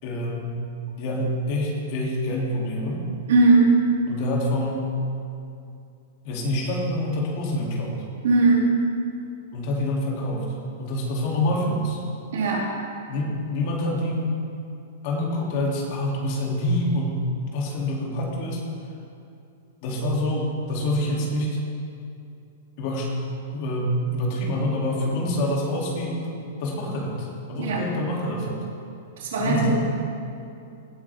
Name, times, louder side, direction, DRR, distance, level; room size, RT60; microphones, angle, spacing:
voice 1, 0.0-0.5 1.0-3.0 4.1-4.9 6.2-8.0 9.5-12.0 13.1-14.3 15.0-17.2 17.5-18.6 19.8-21.6 22.8-23.1 23.5-26.3 26.6-28.7 29.4-29.7, left 1 dB, 50° left, -2 dB, 3.0 m, -26 dB
voice 2, 3.3-3.9 8.2-8.8 12.3-12.7 27.6-27.9 29.2-29.7, right 3 dB, 70° right, -3 dB, 2.9 m, -19 dB
17.0 x 8.9 x 3.7 m, 2.6 s
hypercardioid pair, 120°, 0 cm